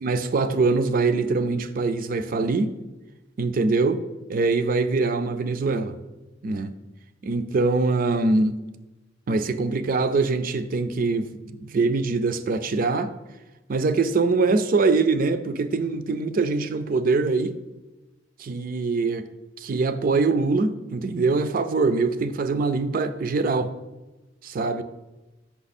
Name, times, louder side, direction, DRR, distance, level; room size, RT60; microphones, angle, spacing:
voice 1, 0.0-2.7 3.4-4.0 4.3-5.9 6.4-6.7 7.2-8.6 9.3-13.1 13.7-17.6 18.4-19.3 19.6-23.7 24.4-24.8, right 3 dB, 50° right, 0.4 m, -23 dB
5.9 x 5.7 x 4.2 m
head